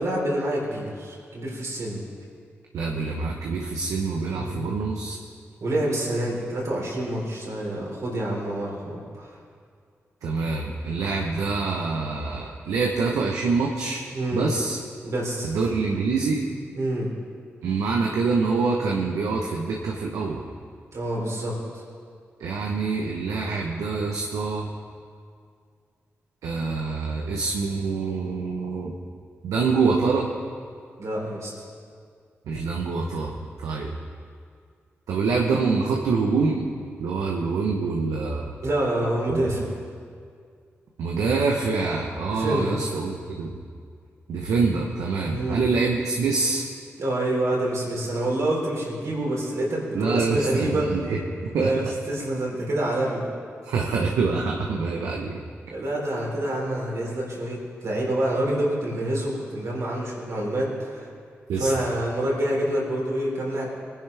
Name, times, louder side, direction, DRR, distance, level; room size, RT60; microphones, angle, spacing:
voice 1, 0.0-2.0 4.3-4.6 5.6-9.4 14.1-14.5 15.0-15.6 16.8-17.1 20.9-21.8 31.0-31.5 38.6-39.7 42.3-42.8 45.3-45.7 47.0-51.0 51.5-53.3 55.7-61.1 61.6-63.7, right 1 dB, 70° right, -4 dB, 4.0 m, -27 dB
voice 2, 2.7-5.2 10.2-14.0 14.3-14.8 15.4-16.4 17.6-20.4 22.4-24.7 26.4-28.9 29.4-30.3 32.5-34.0 35.1-36.7 37.0-38.5 39.3-39.4 41.0-43.6 44.3-46.6 49.9-51.7 53.6-55.4 61.5-61.7, right 4 dB, 85° right, -1 dB, 1.0 m, -25 dB
20.0 x 10.5 x 3.4 m, 2.2 s
supercardioid pair, 40°, 5 cm